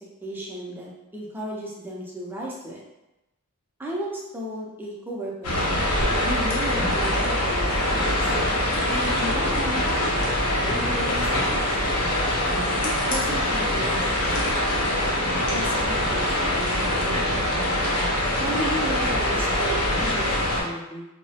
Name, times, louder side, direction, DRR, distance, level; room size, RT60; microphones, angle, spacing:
voice 1, 0.2-2.8 3.8-5.6 6.2-8.3 8.9-10.3 10.6-11.8 12.8-14.2 14.9-17.4 18.4-21.0, right 1 dB, 10° right, -5 dB, 0.4 m, -34 dB
sound 1, 5.4-20.6, left 1 dB, 75° left, 0.6 m, -24 dB
2.2 x 2.0 x 2.7 m, 0.95 s
head